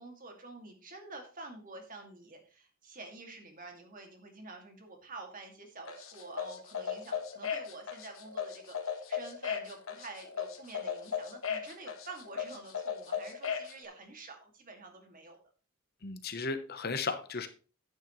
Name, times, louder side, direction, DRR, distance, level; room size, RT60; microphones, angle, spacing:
voice 1, 0.0-15.4, right 3 dB, 40° right, 3 dB, 2.2 m, -48 dB
sound 1, 5.9-13.7, left 7 dB, 65° left, 1.4 m, -36 dB
voice 2, 16.0-17.5, left 4 dB, 45° left, 9 dB, 0.9 m, -35 dB
10.5 x 9.0 x 3.1 m, 0.37 s
head